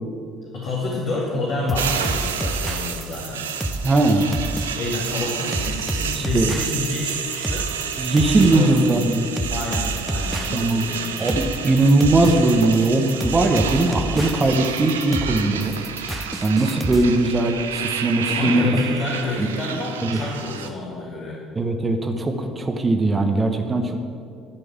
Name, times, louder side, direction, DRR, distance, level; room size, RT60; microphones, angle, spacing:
voice 1, 0.5-3.5 4.7-7.7 8.5-8.8 9.5-11.7 18.2-21.4, left 2 dB, 50° left, -4 dB, 1.9 m, -29 dB
sound 1, 1.7-17.0, right 1 dB, ahead, 0.8 m, -29 dB
sound 2, 1.7-20.7, right 7 dB, 75° right, 0.6 m, -30 dB
voice 2, 3.8-4.3 6.1-6.5 8.0-9.3 10.5-10.8 11.2-15.7 16.4-18.6 19.4-19.5 20.1-20.2 21.6-24.0, right 2 dB, 25° right, 5 dB, 1.1 m, -19 dB
12.0 x 5.3 x 8.4 m, 2.4 s
figure-of-eight pair, 55°, 0 cm